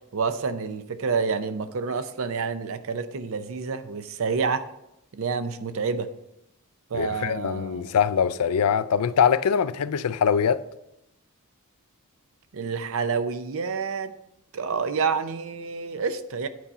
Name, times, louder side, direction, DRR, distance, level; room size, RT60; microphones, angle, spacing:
voice 1, 0.1-4.7 5.1-6.1 6.9-7.8 12.5-14.1 14.5-16.5, right 5 dB, 65° right, 0.6 m, -28 dB
voice 2, 6.9-10.6, left 7 dB, 80° left, 0.4 m, -23 dB
9.4 x 4.2 x 5.4 m
head